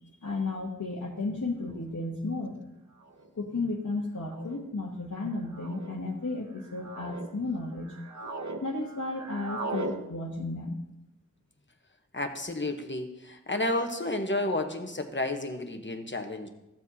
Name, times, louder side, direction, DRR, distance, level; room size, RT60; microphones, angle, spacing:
voice 1, 0.2-2.6 3.4-7.9 8.2-8.3 8.6-10.8, left 2 dB, 70° left, -3 dB, 1.2 m, -33 dB
sound 1, 1.9-2.0 3.0-3.3 4.2-4.6 5.5-5.9 6.6-7.3 7.7-8.6 8.9-10.0, right 3 dB, 70° right, 0.8 m, -38 dB
voice 2, 12.1-16.5, left 1 dB, 40° left, 6 dB, 1.1 m, -31 dB
15.0 x 7.2 x 2.8 m, 0.93 s
wide cardioid pair, 45°, 30 cm